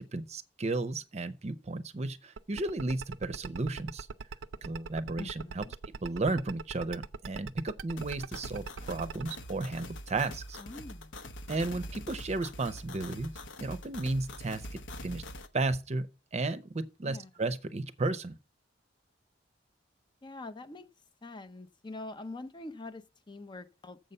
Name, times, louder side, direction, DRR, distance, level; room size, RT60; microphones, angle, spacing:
voice 1, 0.1-4.1 4.6-5.6 6.0-10.6 11.5-13.3 13.6-15.2 15.5-18.4, right 2 dB, 35° right, 0.6 m, -34 dB
sound 1, 2.4-9.3, right 5 dB, 80° right, 0.5 m, -40 dB
voice 2, 5.2-5.7 10.6-11.2 17.0-17.3 20.2-20.9 21.2-24.0, left 2 dB, 25° left, 0.5 m, -44 dB
sound 2, 8.0-15.5, left 1 dB, 75° left, 0.9 m, -44 dB
7.6 x 5.5 x 6.6 m
head